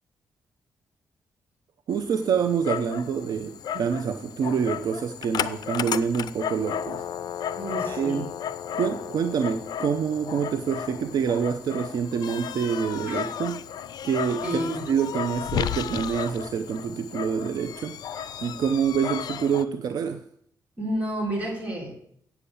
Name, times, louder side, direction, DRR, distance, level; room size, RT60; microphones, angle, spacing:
Dog, 1.9-19.6, left 9 dB, 75° left, 0.5 m, -34 dB
voice 1, 1.9-7.1 7.8-8.3 8.7-13.6 14.0-14.6 14.9-18.0 18.4-20.2, right 7 dB, 65° right, 0.7 m, -26 dB
voice 2, 7.6-8.3 13.1-13.2 14.4-14.8 20.8-22.0, right 1 dB, 20° right, 3.8 m, -30 dB
8.3 x 7.1 x 8.5 m
wide cardioid pair, 140°, 7 cm